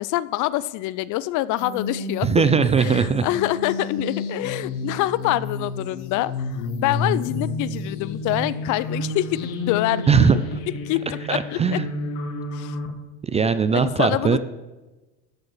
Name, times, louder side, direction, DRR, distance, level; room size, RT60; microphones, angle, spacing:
voice 1, 0.0-2.3 2.8-10.1 10.8-11.0 11.3-11.8 12.5-12.8 13.7-14.4, left 16 dB, 55° left, 18 dB, 0.5 m, -25 dB
sound 1, 1.6-12.9, left 2 dB, 70° left, 1.6 m, -31 dB
voice 2, 2.2-3.3 10.1-10.4 11.3-11.9 13.2-14.4, right 6 dB, 20° right, 12 dB, 0.3 m, -19 dB
12.5 x 5.3 x 6.0 m, 1.1 s
supercardioid pair, 100°, 38 cm